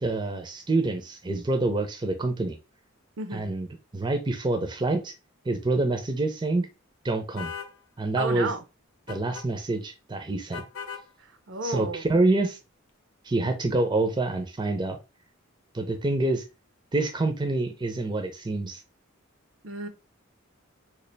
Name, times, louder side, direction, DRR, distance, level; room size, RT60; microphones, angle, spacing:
voice 1, 0.0-2.6 3.3-3.7 3.9-5.1 5.5-6.7 7.0-7.5 8.0-8.5 9.1-10.6 11.6-12.6 13.2-15.0 15.7-16.4 16.9-18.8, right 2 dB, 20° right, 0.5 m, -26 dB
voice 2, 3.2-3.5 8.2-8.6 11.2-12.1 19.6-19.9, right 3 dB, 70° right, 0.6 m, -32 dB
sound 1, 7.4-7.7 9.1-9.5 10.5-11.1, left 7 dB, 80° left, 0.6 m, -37 dB
3.2 x 2.4 x 3.9 m
head